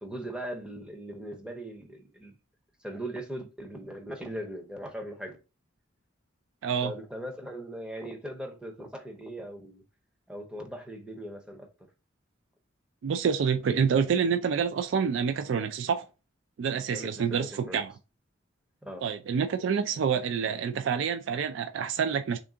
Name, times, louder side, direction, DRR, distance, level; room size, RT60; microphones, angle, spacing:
voice 1, 0.0-2.4 2.8-5.4 6.8-9.8 10.3-11.7 16.9-17.8 18.8-19.0, right 1 dB, 5° right, 0.6 m, -39 dB
voice 2, 6.6-6.9 13.0-16.1 16.6-17.9 19.0-22.4, right 6 dB, 65° right, 0.3 m, -27 dB
3.5 x 2.5 x 3.7 m
head